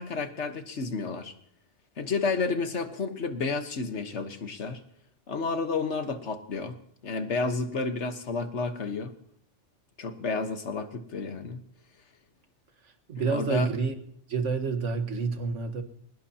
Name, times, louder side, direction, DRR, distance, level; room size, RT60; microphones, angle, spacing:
voice 1, 0.0-1.3 2.0-4.8 5.3-6.8 7.0-9.1 10.0-11.6 13.2-13.7, left 4 dB, 65° left, 8 dB, 1.5 m, -31 dB
voice 2, 12.8-13.9 14.3-15.8, right 5 dB, 70° right, 7 dB, 1.7 m, -29 dB
22.0 x 20.0 x 2.9 m, 0.70 s
omnidirectional pair, 1.3 m